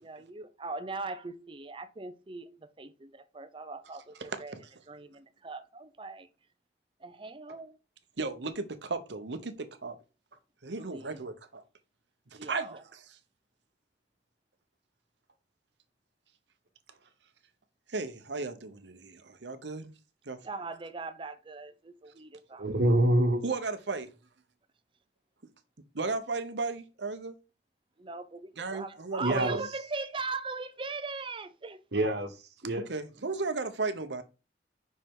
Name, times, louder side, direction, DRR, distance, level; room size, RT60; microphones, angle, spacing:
voice 1, 0.0-4.5 4.9-6.3 7.0-7.8 10.9-11.3 12.4-12.8 20.4-22.7 28.0-31.8, right 3 dB, 30° right, 0.6 m, -40 dB
voice 2, 8.2-10.0 10.6-11.6 12.3-12.8 17.9-19.9 20.3-20.4 23.4-24.1 25.9-27.3 28.6-29.6 32.9-34.2, right 3 dB, 85° right, 0.9 m, -35 dB
voice 3, 22.6-23.4 29.2-29.6 31.9-32.9, right 1 dB, 65° right, 1.3 m, -26 dB
5.6 x 5.4 x 3.7 m
head